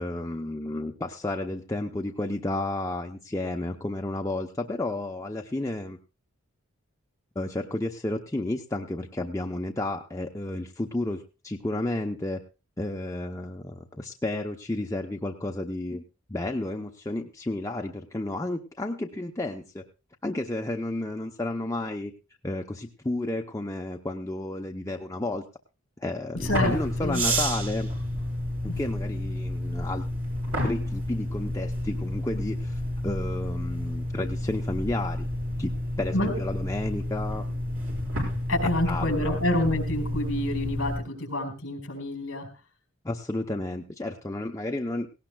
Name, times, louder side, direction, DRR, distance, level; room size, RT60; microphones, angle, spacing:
voice 1, 0.0-6.0 7.4-12.4 12.8-16.0 16.3-19.8 20.2-22.1 22.4-25.4 26.0-27.9 28.6-30.0 30.6-35.3 35.6-37.4 38.9-39.4 43.0-45.1, left 2 dB, 15° left, 2 dB, 0.6 m, -32 dB
voice 2, 26.4-27.2 28.6-28.8 36.1-36.3 38.5-42.5, left 1 dB, 60° left, 5 dB, 4.4 m, -28 dB
sound 1, 26.4-41.0, equal, 70° right, 5.9 m, -30 dB
18.0 x 17.5 x 2.2 m, 0.31 s
head